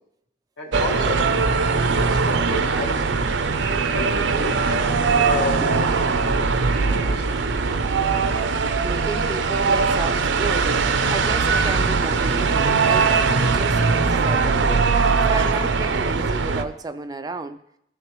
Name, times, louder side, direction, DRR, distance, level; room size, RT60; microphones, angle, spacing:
voice 1, 0.6-1.3 1.8-3.4 3.9-6.6 6.8-7.4, left 2 dB, 70° left, -2 dB, 2.2 m, -32 dB
sound 1, 0.7-16.6, right 4 dB, 70° right, 0.6 m, -21 dB
voice 2, 8.8-17.6, right 3 dB, 20° right, 10 dB, 0.3 m, -32 dB
15.5 x 6.6 x 3.1 m, 0.78 s
head